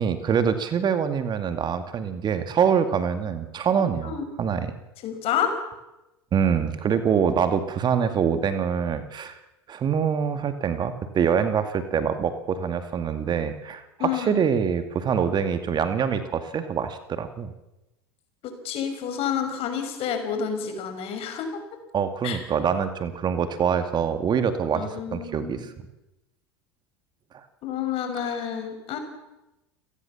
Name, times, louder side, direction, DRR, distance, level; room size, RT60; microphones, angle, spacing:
voice 1, 0.0-4.7 6.3-9.4 9.7-17.5 21.9-25.7 28.2-28.3, right 7 dB, 35° right, 9 dB, 2.3 m, -25 dB
voice 2, 5.0-5.5 14.0-14.4 18.4-21.6 22.2-22.4 24.7-25.7 27.6-29.0, left 8 dB, 45° left, 7 dB, 5.9 m, -29 dB
30.0 x 18.5 x 7.3 m, 0.97 s
hypercardioid pair, 80°, 13 cm